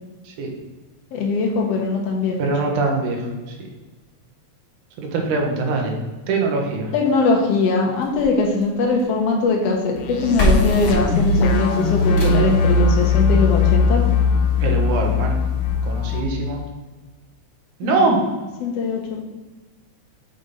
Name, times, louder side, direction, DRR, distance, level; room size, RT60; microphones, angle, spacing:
voice 1, 1.1-2.4 6.9-14.0 17.8-18.3 18.6-19.0, left 4 dB, 60° left, 0 dB, 2.2 m, -21 dB
voice 2, 2.4-3.2 5.0-5.9 6.3-6.9 14.6-15.4 15.8-16.6 17.8-18.2, right 3 dB, 75° right, 1 dB, 2.7 m, -22 dB
sound 1, 8.0-9.2 10.0-10.1 10.4-12.6 14.0-14.1 14.6-14.7 14.9-15.0 15.6-15.7, equal, 40° left, 1.2 m, -24 dB
sound 2, 10.0-16.2, left 3 dB, 80° left, 1.2 m, -19 dB
6.5 x 5.3 x 5.2 m, 1.2 s
omnidirectional pair, 3.6 m